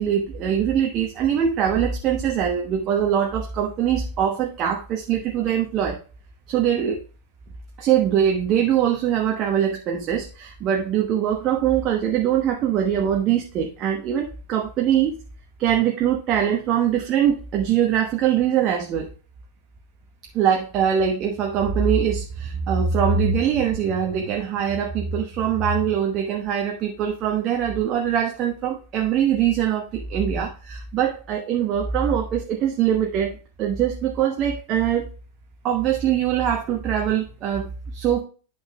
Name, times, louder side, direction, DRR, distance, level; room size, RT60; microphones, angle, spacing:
voice 1, 0.0-6.0 6.5-7.0 7.8-15.1 15.6-19.1 20.3-35.0 35.6-38.2, right 9 dB, 35° right, 2 dB, 1.0 m, -22 dB
11.0 x 5.9 x 2.2 m, 0.37 s
figure-of-eight pair, 90°, 0 cm